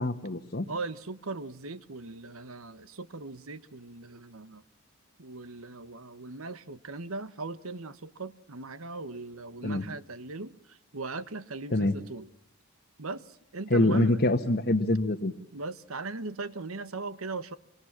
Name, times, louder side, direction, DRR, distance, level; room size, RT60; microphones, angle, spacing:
voice 1, 0.0-0.6 9.6-9.9 11.7-11.9 13.7-15.3, left 1 dB, 50° left, 1.4 m, -25 dB
voice 2, 0.7-4.6 5.2-12.3 13.0-14.2 15.5-17.5, right 3 dB, 75° right, 1.3 m, -39 dB
26.0 x 24.0 x 7.5 m
head